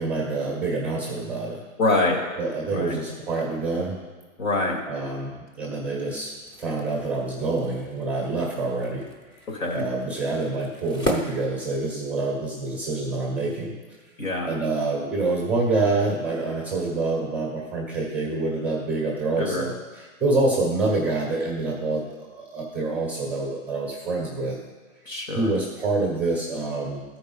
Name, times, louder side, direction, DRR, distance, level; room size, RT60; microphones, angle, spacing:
voice 1, 0.0-1.6 2.4-4.0 4.9-9.1 9.7-13.7 14.5-24.6 25.3-27.0, right 3 dB, 5° right, -2 dB, 0.7 m, -27 dB
voice 2, 1.8-2.2 2.7-3.0 4.4-4.8 9.5-9.8 14.2-14.5 19.4-19.6 25.1-25.5, left 2 dB, 80° left, 0 dB, 2.6 m, -25 dB
sound 1, 6.3-12.3, equal, 20° left, 0.9 m, -36 dB
11.5 x 4.6 x 5.5 m, 1.3 s
hypercardioid pair, 160°, 40 cm